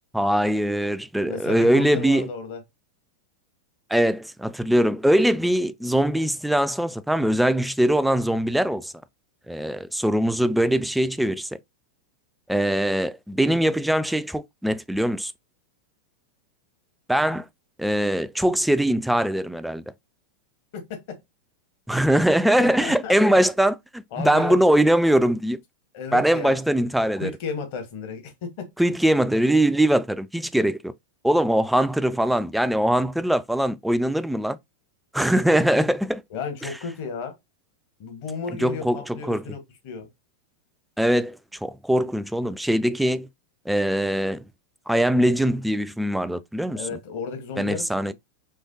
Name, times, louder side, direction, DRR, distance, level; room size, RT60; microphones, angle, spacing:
voice 1, 0.1-2.3 3.9-8.9 9.5-11.5 12.5-15.3 17.1-17.5 17.8-19.8 21.9-25.6 26.1-27.3 28.8-30.9 31.2-34.6 35.1-36.2 38.6-39.4 41.0-43.3 43.7-44.4 44.9-46.8 47.6-48.1, right 1 dB, ahead, 0.3 m, -22 dB
voice 2, 1.2-2.6 20.7-21.2 22.6-23.4 24.1-24.8 25.9-26.6 27.2-28.7 35.5-35.7 36.3-37.3 38.0-40.1 46.7-48.1, left 5 dB, 45° left, 1.3 m, -34 dB
4.7 x 3.3 x 2.6 m
figure-of-eight pair, 90°, 0 cm